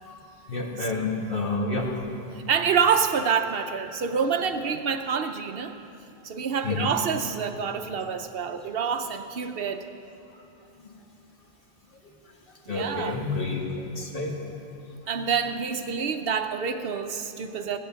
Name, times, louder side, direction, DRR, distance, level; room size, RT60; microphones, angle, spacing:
voice 1, 0.5-1.9 6.6-6.9 10.8-10.9 12.0-12.1 12.5-14.4, left 3 dB, 60° left, 0 dB, 1.8 m, -29 dB
voice 2, 2.5-5.7 6.2-9.8 12.7-13.2 15.1-17.8, right 6 dB, 70° right, 8 dB, 0.9 m, -27 dB
16.0 x 8.2 x 6.9 m, 2.7 s
omnidirectional pair, 1.0 m